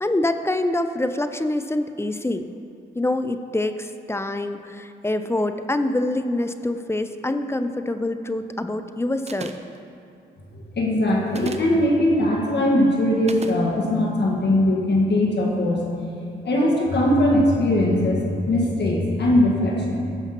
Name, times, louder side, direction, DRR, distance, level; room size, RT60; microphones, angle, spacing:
voice 1, 0.0-2.4 3.0-9.6, left 1 dB, 10° left, 9 dB, 0.5 m, -25 dB
sound 1, 9.3-9.8 11.3-11.8 13.3-13.6, right 4 dB, 30° right, 0.7 m, -34 dB
voice 2, 10.8-15.8 16.4-20.0, left 1 dB, 55° left, -3 dB, 1.7 m, -20 dB
16.0 x 5.7 x 3.0 m, 2.6 s
supercardioid pair, 55°, 21 cm